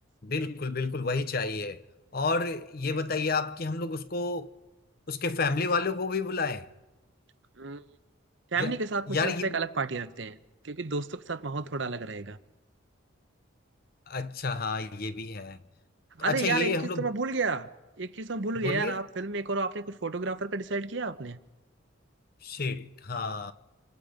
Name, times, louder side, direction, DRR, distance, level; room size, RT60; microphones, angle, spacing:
voice 1, 0.2-1.8 2.1-4.5 5.1-6.7 8.6-8.8 9.1-9.6 14.1-15.6 16.2-17.1 18.6-19.0 22.4-23.5, left 3 dB, 45° left, 0.8 m, -30 dB
voice 2, 8.5-10.4 10.6-12.4 16.2-17.7 18.0-21.4, right 3 dB, 60° right, 0.9 m, -31 dB
26.0 x 26.0 x 5.2 m
head